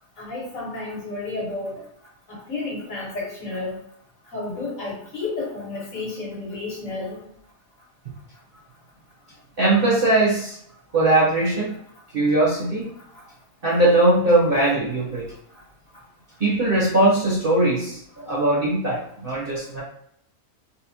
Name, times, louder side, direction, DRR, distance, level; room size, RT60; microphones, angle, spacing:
voice 1, 0.2-1.8 2.3-3.8 4.3-7.2 13.1-13.2, left 3 dB, 55° left, -6 dB, 1.8 m, -31 dB
voice 2, 9.6-10.6 10.9-11.7 12.1-12.9 13.6-15.3 16.4-19.8, right 2 dB, 40° right, -6 dB, 1.0 m, -20 dB
4.2 x 2.1 x 2.8 m, 0.69 s
omnidirectional pair, 1.6 m